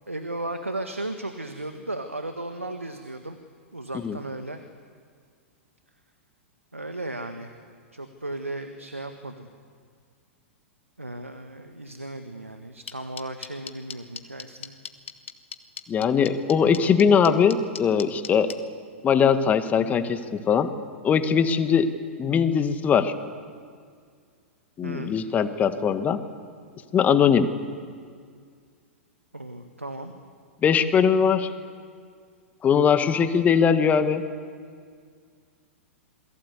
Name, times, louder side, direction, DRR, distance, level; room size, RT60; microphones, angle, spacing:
voice 1, 0.1-3.4 3.7-4.6 6.7-7.6 7.9-9.5 11.0-14.7 24.8-25.2 29.3-30.1, right 2 dB, 90° right, 7 dB, 1.6 m, -35 dB
sound 1, 12.9-18.5, left 7 dB, 65° left, 1.6 m, -36 dB
voice 2, 15.9-18.5 19.0-20.7 21.0-21.9 22.2-23.1 24.8-26.2 26.9-27.5 30.6-31.5 32.6-34.2, left 7 dB, 20° left, 10 dB, 1.7 m, -21 dB
28.0 x 22.0 x 8.2 m, 2.1 s
figure-of-eight pair, 100°, 7 cm